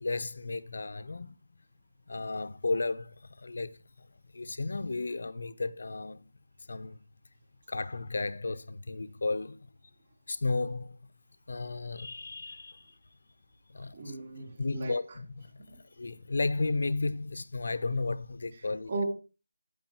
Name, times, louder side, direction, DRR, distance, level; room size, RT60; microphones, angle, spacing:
voice 1, 0.0-1.4 2.1-3.8 4.3-6.3 6.7-7.0 7.7-9.7 10.3-11.0 11.5-12.8 13.7-14.1 14.6-15.5 16.0-18.9, left 3 dB, 50° left, 0.8 m, -33 dB
voice 2, 13.9-15.2 15.6-15.8 18.9-19.0, right 3 dB, 30° right, 2.9 m, -37 dB
15.0 x 5.2 x 4.5 m
figure-of-eight pair, 175°, 0 cm